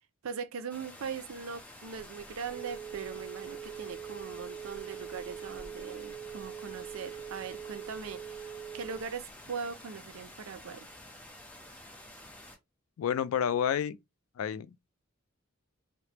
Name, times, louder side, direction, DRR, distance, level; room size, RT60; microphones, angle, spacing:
voice 1, 0.2-8.5 8.7-10.9, right 6 dB, 75° right, 0.4 m, -40 dB
sound 1, 0.7-12.6, left 1 dB, 10° left, 0.7 m, -50 dB
Telephone, 2.0-9.3, right 8 dB, 40° right, 0.9 m, -43 dB
voice 2, 13.0-14.0 14.4-14.7, left 8 dB, 85° left, 0.3 m, -29 dB
3.2 x 2.0 x 2.9 m
head